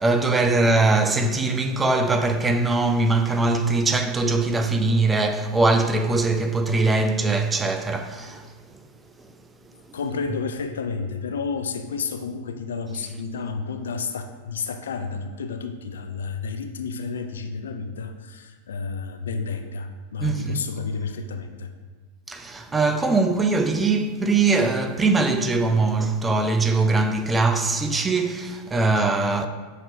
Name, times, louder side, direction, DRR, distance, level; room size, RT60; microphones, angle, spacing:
voice 1, 0.0-8.5 20.2-20.6 22.3-29.5, right 3 dB, 15° right, 0.3 m, -21 dB
voice 2, 9.9-21.7, left 5 dB, 65° left, 0.3 m, -31 dB
5.8 x 2.8 x 3.3 m
figure-of-eight pair, 90°, 0 cm